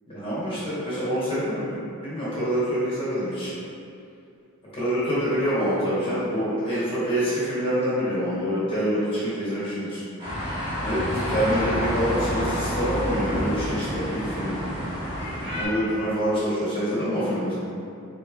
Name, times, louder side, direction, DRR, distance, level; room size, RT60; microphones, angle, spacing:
voice 1, 0.1-3.5 4.7-10.0 10.8-14.6 15.5-17.5, equal, 25° left, -11 dB, 1.1 m, -26 dB
sound 1, 10.2-15.7, equal, 25° right, 0.9 m, -28 dB
3.9 x 3.0 x 2.3 m, 2.4 s
head